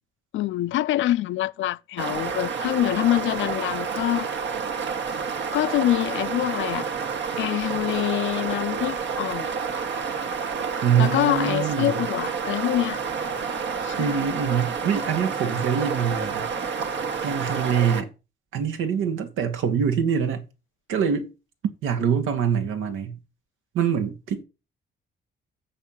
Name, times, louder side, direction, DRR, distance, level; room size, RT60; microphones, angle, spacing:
voice 1, 0.3-4.3 5.5-6.9 7.4-9.5 11.0-13.0 13.8-14.3, left 14 dB, 75° left, 0.5 m, -25 dB
sound 1, 2.0-18.0, right 6 dB, 65° right, 1.6 m, -29 dB
voice 2, 10.8-11.9 14.0-16.5 17.2-18.1 18.5-20.4 20.9-21.3 21.8-23.2 23.7-24.4, right 7 dB, 90° right, 1.7 m, -24 dB
7.5 x 5.7 x 7.4 m
cardioid pair, 90°, 20 cm